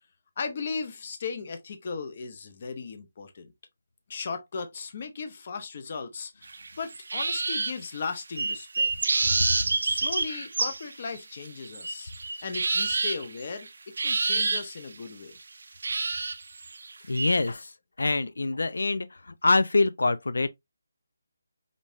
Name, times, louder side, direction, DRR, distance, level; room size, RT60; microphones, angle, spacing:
voice 1, 0.4-3.5 4.1-8.9 9.8-12.1 12.4-15.3, left 5 dB, 25° left, 0.7 m, -36 dB
sound 1, 6.4-7.8 8.4-11.2 11.4-13.7 14.0-14.8 15.8-17.5, right 3 dB, 50° right, 0.7 m, -28 dB
voice 2, 17.1-17.6 18.0-19.1 19.4-20.5, left 3 dB, 80° left, 0.5 m, -24 dB
5.2 x 3.2 x 2.6 m
hypercardioid pair, 180°, 0 cm